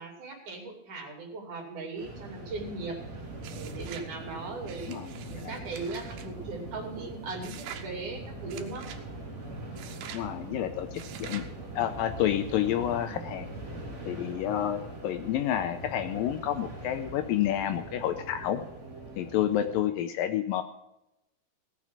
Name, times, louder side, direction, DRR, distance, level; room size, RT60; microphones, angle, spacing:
voice 1, 0.0-3.0 3.5-4.9 5.2-8.9, right 3 dB, 55° right, 2 dB, 3.7 m, -38 dB
sound 1, 2.0-19.8, right 2 dB, 25° right, 1.9 m, -42 dB
sound 2, 3.4-4.1 4.6-6.3 7.4-7.9 8.5-9.0 9.8-10.3 10.9-11.5, right 9 dB, 80° right, 2.8 m, -45 dB
voice 2, 4.9-5.5 10.1-11.4 11.8-13.5 14.1-18.6 19.2-20.6, left 11 dB, 80° left, 8 dB, 2.1 m, -29 dB
17.5 x 6.2 x 7.3 m, 0.87 s
omnidirectional pair, 4.4 m